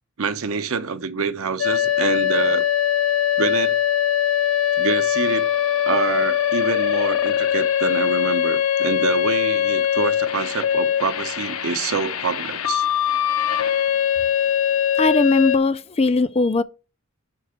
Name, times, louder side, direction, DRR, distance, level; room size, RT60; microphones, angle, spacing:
voice 1, 0.2-2.7 3.4-3.8 4.8-5.5 5.8-12.9, right 5 dB, 85° right, 0.7 m, -26 dB
sound 1, 1.6-15.6, left 10 dB, 85° left, 0.6 m, -21 dB
voice 2, 15.0-16.6, left 3 dB, 30° left, 0.4 m, -19 dB
5.7 x 4.7 x 6.2 m
head